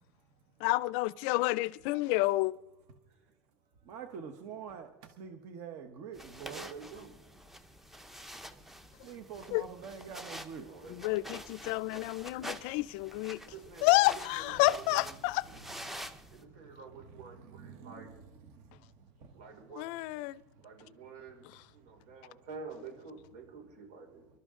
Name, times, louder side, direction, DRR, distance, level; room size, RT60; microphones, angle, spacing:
voice 1, 0.6-2.5 9.5-9.6 10.9-13.4 13.8-15.4 19.8-20.4, left 19 dB, 55° left, 0.4 m, -29 dB
voice 2, 3.9-4.9 5.2-6.7 9.0-10.7 15.4-15.9 17.1-18.3, right 6 dB, 50° right, 1.1 m, -45 dB
sound 1, 6.1-16.4, equal, 5° right, 0.6 m, -47 dB
voice 3, 6.4-7.1 10.6-12.4 13.4-15.2 16.3-18.1 19.3-19.9 20.6-24.3, right 4 dB, 85° right, 5.4 m, -49 dB
26.0 x 12.5 x 3.7 m
cardioid pair, 180°, 7 cm